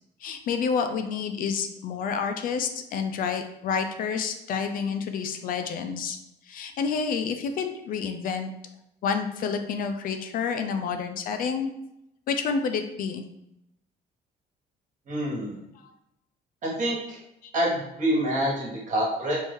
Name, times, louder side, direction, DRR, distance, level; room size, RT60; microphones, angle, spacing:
voice 1, 0.2-6.2 6.5-8.5 9.0-11.7 12.3-13.2 17.4-17.5, left 6 dB, 55° left, 7 dB, 0.4 m, -29 dB
voice 2, 15.1-15.6 16.6-17.2 17.5-19.4, equal, 45° right, -4 dB, 1.4 m, -26 dB
3.1 x 2.6 x 3.6 m, 0.84 s
cardioid pair, 110°, 17 cm